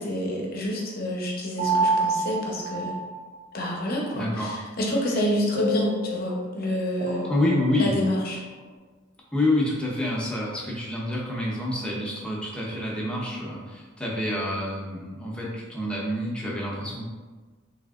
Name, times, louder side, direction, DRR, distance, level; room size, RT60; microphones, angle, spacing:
voice 1, 0.0-2.9 3.5-7.2 7.8-8.4, equal, 50° left, -2 dB, 0.7 m, -28 dB
sound 1, 1.6-3.4 5.5-8.3, right 2 dB, 50° right, 0.7 m, -28 dB
voice 2, 4.1-4.5 7.3-8.0 9.3-17.1, left 1 dB, 5° left, -5 dB, 0.6 m, -27 dB
3.4 x 2.8 x 2.3 m, 1.3 s
head